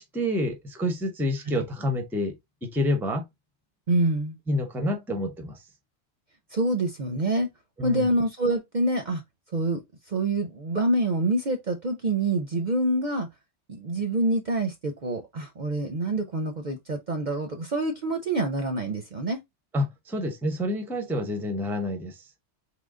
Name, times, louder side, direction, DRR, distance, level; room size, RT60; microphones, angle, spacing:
voice 1, 0.0-2.3 2.6-3.2 4.5-5.6 7.8-8.1 19.7-22.2, left 1 dB, ahead, 0.6 m, -28 dB
voice 2, 3.9-4.4 6.5-7.5 7.8-9.2 9.5-9.8 10.1-13.3 13.7-19.4, right 2 dB, 45° right, 0.7 m, -26 dB
3.8 x 3.1 x 3.6 m
omnidirectional pair, 1.2 m